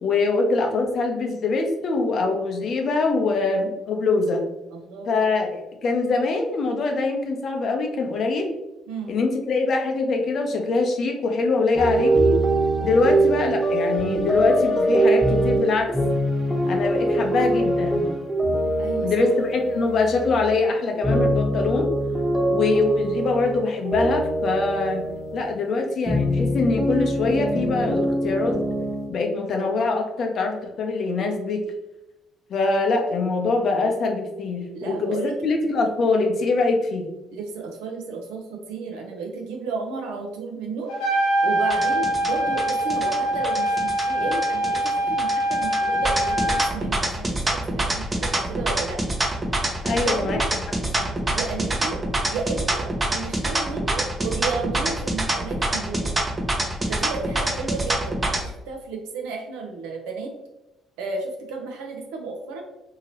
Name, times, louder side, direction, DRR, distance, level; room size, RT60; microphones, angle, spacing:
voice 1, 0.0-4.4 5.1-8.5 9.1-12.4 12.8-15.9 16.7-18.1 19.0-21.9 22.5-25.0 25.3-28.6 29.1-31.6 32.5-37.1 49.8-50.4 50.7-51.1, left 3 dB, 60° left, 3 dB, 0.6 m, -23 dB
voice 2, 4.7-5.3 8.9-9.2 13.0-13.2 18.8-19.3 34.7-35.6 37.3-40.9 41.4-46.2 46.5-49.0 50.0-50.5 51.3-52.0 52.3-56.2 56.9-60.3 61.0-62.6, right 4 dB, 85° right, 2 dB, 0.6 m, -33 dB
sound 1, 11.7-20.7 20.9-25.5 26.1-29.1, right 1 dB, 5° right, 1.0 m, -23 dB
Trumpet, 40.9-46.7, right 1 dB, 85° left, 0.8 m, -23 dB
sound 2, 41.7-58.4, right 1 dB, 25° right, 0.7 m, -25 dB
2.8 x 2.8 x 2.8 m, 0.99 s
supercardioid pair, 65°, 0 cm